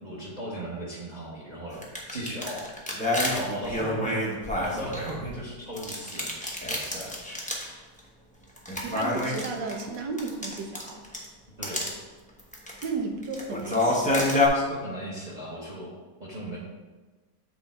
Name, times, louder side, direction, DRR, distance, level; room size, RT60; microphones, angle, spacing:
voice 1, 0.0-1.8 2.1-2.7 3.3-4.2 4.6-6.4 11.6-11.9 14.5-15.9 16.2-16.6, right 1 dB, 30° right, -5 dB, 1.0 m, -36 dB
sound 1, 1.7-5.4 5.8-7.7 8.0-8.1 8.6-11.2 11.6-11.9 12.4-12.9 13.2-14.5, left 1 dB, 5° left, 0.6 m, -28 dB
voice 2, 8.8-11.0 12.8-14.3, right 4 dB, 80° right, 3 dB, 1.5 m, -34 dB
7.8 x 3.6 x 4.3 m, 1.3 s
omnidirectional pair, 1.9 m